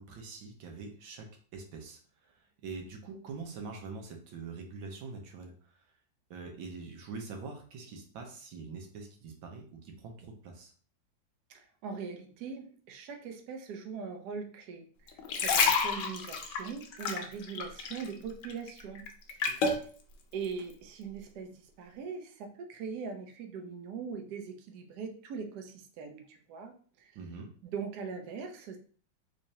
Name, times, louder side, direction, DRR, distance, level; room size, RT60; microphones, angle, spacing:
voice 1, 0.0-2.3 2.6-5.8 6.3-10.7 19.6-19.8 27.1-27.5, right 4 dB, 90° right, 2 dB, 1.6 m, -44 dB
voice 2, 11.5-19.0 19.3-19.6 20.3-26.7 27.0-27.1 27.7-28.8, right 5 dB, 65° right, 4 dB, 1.1 m, -41 dB
sound 1, 15.1-18.1 18.4-19.8 20.4-20.6, left 5 dB, 70° left, 1.2 m, -29 dB
3.6 x 3.3 x 2.7 m, 0.43 s
omnidirectional pair, 2.1 m